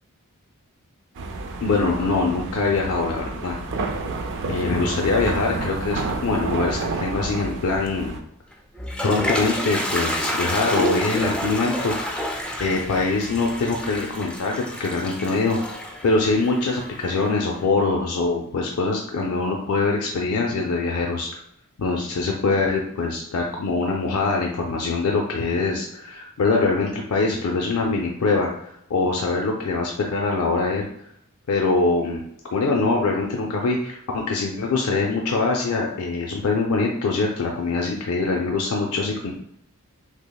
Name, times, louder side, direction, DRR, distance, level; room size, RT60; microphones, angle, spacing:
sound 1, 1.2-8.2, right 3 dB, 60° right, 0.4 m, -30 dB
voice 1, 1.6-3.6 4.5-8.2 9.0-12.0 12.6-15.6 16.0-21.3 21.8-30.9 31.5-32.2 32.5-39.3, left 3 dB, 80° left, 0 dB, 0.5 m, -23 dB
Toilet flush, 8.5-17.4, left 1 dB, 5° left, 0.4 m, -29 dB
6.1 x 2.0 x 2.3 m, 0.73 s
head